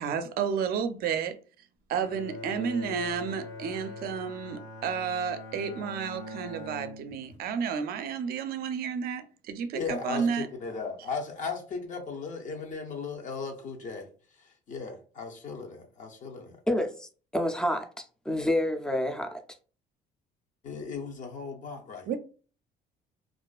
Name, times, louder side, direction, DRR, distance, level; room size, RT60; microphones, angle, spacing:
voice 1, 0.0-1.4 1.9-10.5 22.1-22.2, right 7 dB, 65° right, 0.4 m, -31 dB
Bowed string instrument, 2.0-7.5, left 2 dB, 75° left, 0.9 m, -42 dB
voice 2, 9.7-14.1 14.4-16.6 20.6-22.2, left 5 dB, 50° left, 0.6 m, -37 dB
voice 3, 16.7-19.4, left 1 dB, 5° left, 0.4 m, -29 dB
2.4 x 2.2 x 2.3 m
cardioid pair, 110°, 17 cm